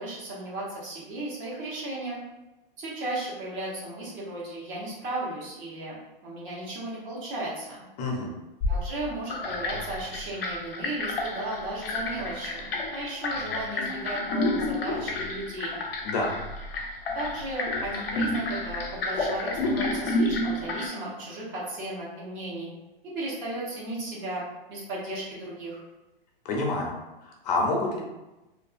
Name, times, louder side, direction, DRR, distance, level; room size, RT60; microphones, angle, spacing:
voice 1, 0.0-2.2 2.8-7.8 8.7-15.8 17.1-22.7 23.1-24.4 24.7-25.8, right 1 dB, 35° right, -6 dB, 1.0 m, -35 dB
voice 2, 8.0-8.3 16.0-16.3 26.4-27.0 27.2-28.0, left 2 dB, 45° left, -1 dB, 0.6 m, -27 dB
sound 1, 8.6-10.7, left 3 dB, 5° left, 0.8 m, -33 dB
sound 2, 9.3-20.9, left 2 dB, 85° left, 0.6 m, -30 dB
2.5 x 2.4 x 2.4 m, 1.0 s
hypercardioid pair, 140°, 29 cm